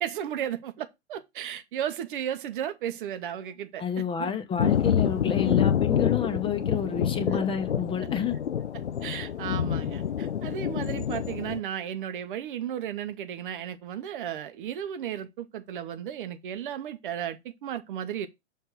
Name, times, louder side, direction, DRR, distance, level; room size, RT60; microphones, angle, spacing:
voice 1, 0.0-3.8 4.2-4.3 8.0-8.1 8.7-18.3, right 10 dB, 45° right, 0.8 m, -34 dB
voice 2, 3.8-8.4, left 7 dB, 15° left, 0.9 m, -29 dB
Thunder, 4.6-11.6, left 8 dB, 75° left, 0.6 m, -27 dB
6.5 x 3.4 x 5.7 m
figure-of-eight pair, 105°, 35 cm